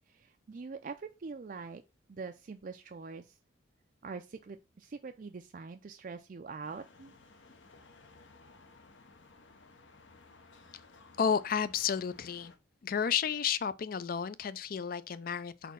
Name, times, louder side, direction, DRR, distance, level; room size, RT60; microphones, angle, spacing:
voice 1, 0.1-1.8 2.1-3.4 4.0-7.2, right 4 dB, 45° right, 0.4 m, -44 dB
sound 1, 6.6-12.6, left 3 dB, 70° left, 0.9 m, -58 dB
voice 2, 11.2-12.5 12.8-15.7, left 7 dB, 45° left, 0.4 m, -32 dB
4.3 x 4.1 x 5.5 m
head